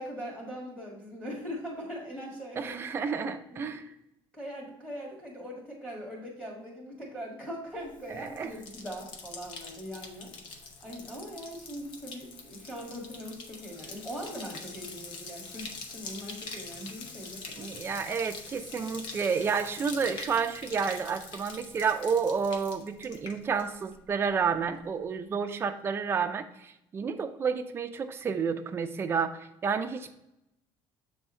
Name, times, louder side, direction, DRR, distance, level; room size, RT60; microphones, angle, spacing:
voice 1, 0.0-2.7 3.5-3.6 4.3-10.3 10.8-17.7, equal, 10° left, -3 dB, 1.7 m, -41 dB
voice 2, 2.6-3.9 8.1-8.5 17.6-30.1, right 6 dB, 25° right, 6 dB, 0.5 m, -30 dB
Bathtub (filling or washing), 7.9-24.0 24.2-24.8, left 4 dB, 55° left, 0.8 m, -44 dB
7.1 x 3.6 x 4.2 m, 0.84 s
cardioid pair, 155°, 10 cm